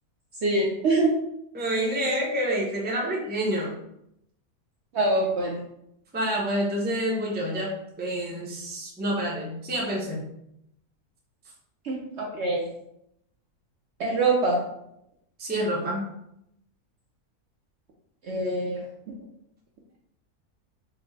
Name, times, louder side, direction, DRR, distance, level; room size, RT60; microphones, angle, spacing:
voice 1, 0.4-1.1 4.9-5.6 11.8-12.7 14.0-14.6 18.2-18.9, right 2 dB, 60° right, -2 dB, 0.8 m, -24 dB
voice 2, 1.5-3.7 6.1-10.2 15.4-16.0, right 1 dB, 10° right, -3 dB, 0.5 m, -28 dB
4.4 x 2.1 x 3.9 m, 0.78 s
omnidirectional pair, 1.6 m